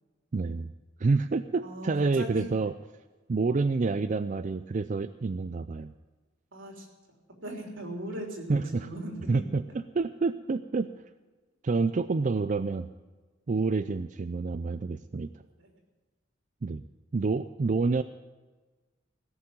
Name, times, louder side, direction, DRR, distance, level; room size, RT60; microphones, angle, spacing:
voice 1, 0.3-0.7 1.0-2.7 3.3-5.9 8.5-8.9 9.3-9.6 9.9-10.9 11.6-12.9 13.5-15.3 16.6-16.8 17.1-18.0, right 4 dB, 40° right, 11 dB, 0.4 m, -28 dB
voice 2, 1.6-2.5 6.5-6.9 7.4-9.3 15.6-15.7, right 1 dB, 85° right, 1 dB, 3.5 m, -39 dB
17.0 x 7.1 x 8.7 m, 1.3 s
head